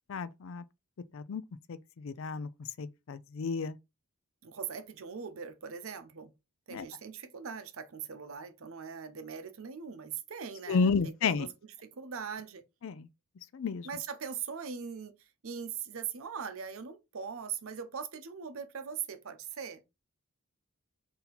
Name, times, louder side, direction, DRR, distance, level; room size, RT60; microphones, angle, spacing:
voice 1, 0.1-0.6 1.1-1.4 1.7-2.5 2.8-3.8 6.7-6.8 10.7-11.5 12.8-13.1 13.5-13.9, left 5 dB, 65° left, 0.4 m, -31 dB
voice 2, 4.4-6.3 6.7-11.5 11.8-12.6 13.8-19.8, right 6 dB, 75° right, 0.6 m, -41 dB
3.9 x 2.8 x 4.2 m
head